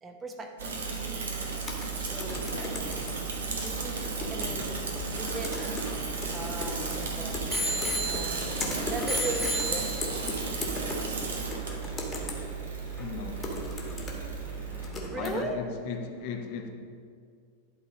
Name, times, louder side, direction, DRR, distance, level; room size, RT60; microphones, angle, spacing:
voice 1, 0.0-0.8 2.0-2.5 3.6-4.8 5.2-5.6 6.2-7.4 8.0-10.0 15.1-15.6, right 2 dB, 20° right, 4 dB, 0.9 m, -38 dB
Bicycle / Mechanisms, 0.6-14.9, right 5 dB, 65° right, 1.1 m, -34 dB
sound 1, 1.6-15.3, left 1 dB, 20° left, 1.4 m, -38 dB
Bicycle bell, 5.3-6.9 7.5-8.6 9.1-10.3 11.0-11.1, right 1 dB, 5° right, 1.6 m, -33 dB
voice 2, 13.0-13.5 15.2-16.7, left 6 dB, 45° left, 5 dB, 0.8 m, -36 dB
11.0 x 4.1 x 4.1 m, 2.2 s
figure-of-eight pair, 90°, 0 cm